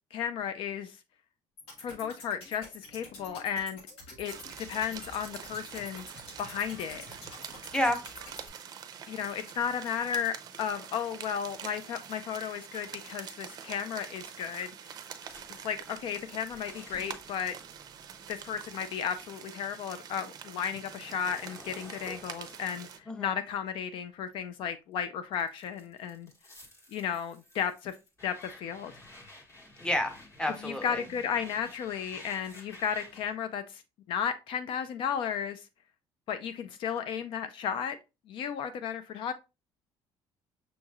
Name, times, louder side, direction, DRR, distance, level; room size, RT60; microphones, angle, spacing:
voice 1, 0.1-1.0 1.8-3.8 4.2-6.1 6.4-7.0 9.1-14.7 15.5-17.5 18.3-26.3 26.9-27.9 28.2-28.9 30.6-33.8 34.1-35.7 36.3-38.0 38.3-39.3, left 8 dB, 60° left, 0.4 m, -34 dB
sound 1, 1.6-8.5, left 2 dB, 80° left, 1.4 m, -48 dB
sound 2, 4.2-23.0, right 8 dB, 40° right, 0.5 m, -46 dB
sound 3, 15.2-19.5 19.8-24.8 25.3-33.3, left 2 dB, 30° left, 1.5 m, -53 dB
voice 2, 29.8-31.0, left 1 dB, 10° left, 0.8 m, -30 dB
6.3 x 3.0 x 2.3 m
cardioid pair, 150°, 10 cm